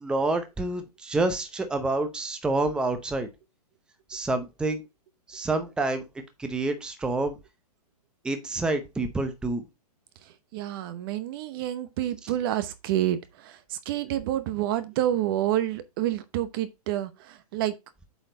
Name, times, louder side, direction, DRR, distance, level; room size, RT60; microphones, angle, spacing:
voice 1, 0.0-3.3 4.1-4.9 5.3-6.0 6.4-7.4 8.2-9.6, right 2 dB, 5° right, 0.8 m, -28 dB
voice 2, 10.5-17.7, right 12 dB, 35° right, 0.9 m, -28 dB
8.0 x 4.4 x 3.9 m
hypercardioid pair, 155°, 20 cm